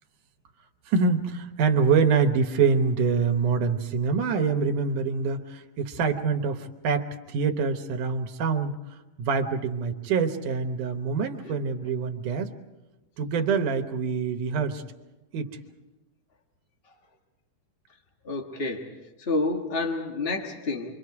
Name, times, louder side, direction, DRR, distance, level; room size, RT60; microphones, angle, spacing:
voice 1, 0.9-8.8 9.2-12.5 13.2-14.8 15.3-15.6, right 5 dB, 75° right, 7 dB, 2.6 m, -25 dB
voice 2, 18.2-20.9, left 3 dB, 35° left, 2 dB, 0.9 m, -29 dB
27.5 x 24.0 x 4.8 m, 1.0 s
omnidirectional pair, 3.7 m